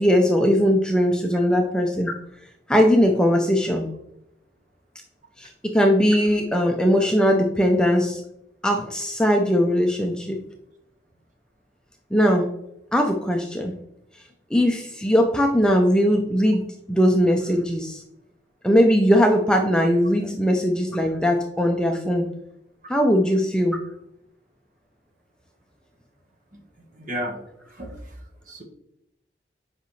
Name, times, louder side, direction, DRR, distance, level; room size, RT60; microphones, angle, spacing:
voice 1, 0.0-2.1 2.7-3.9 5.4-8.2 8.6-10.4 12.1-12.5 12.9-13.7 14.5-16.6 16.9-18.0 18.6-22.3 22.9-23.8, equal, 5° left, 2 dB, 0.5 m, -20 dB
voice 2, 26.9-27.4 27.7-28.2 28.5-28.6, equal, 45° right, 1 dB, 1.4 m, -33 dB
7.9 x 5.1 x 3.2 m, 0.81 s
head